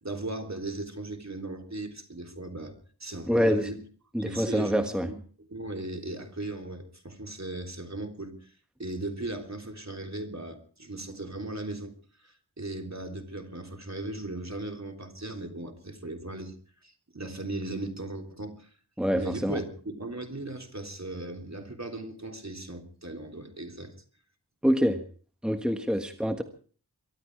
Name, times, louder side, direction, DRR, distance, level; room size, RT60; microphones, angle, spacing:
voice 1, 0.0-2.8 3.0-3.8 4.2-8.5 8.8-11.9 12.2-16.6 16.8-18.7 19.1-23.9, right 2 dB, 45° right, 3.5 m, -37 dB
voice 2, 3.3-3.7 4.1-5.1 19.0-19.6 24.6-25.0 25.4-26.4, equal, ahead, 1.5 m, -26 dB
23.5 x 12.5 x 4.7 m
wide cardioid pair, 45°, 39 cm